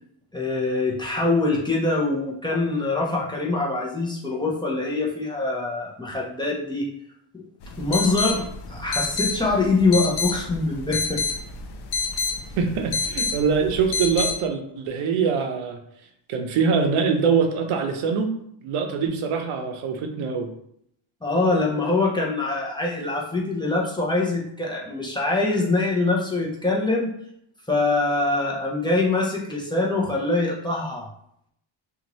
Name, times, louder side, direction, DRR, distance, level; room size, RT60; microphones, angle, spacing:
voice 1, 0.3-6.9 7.3-7.4 7.8-11.2 21.2-27.1 27.7-31.1, left 3 dB, 10° left, -4 dB, 0.6 m, -24 dB
sound 1, 7.6-14.3, left 4 dB, 55° left, 0.5 m, -29 dB
voice 2, 12.6-15.8 16.3-18.3 18.6-20.5, right 5 dB, 80° right, 5 dB, 0.7 m, -23 dB
2.7 x 2.4 x 3.0 m, 0.71 s
cardioid pair, 95°, 49 cm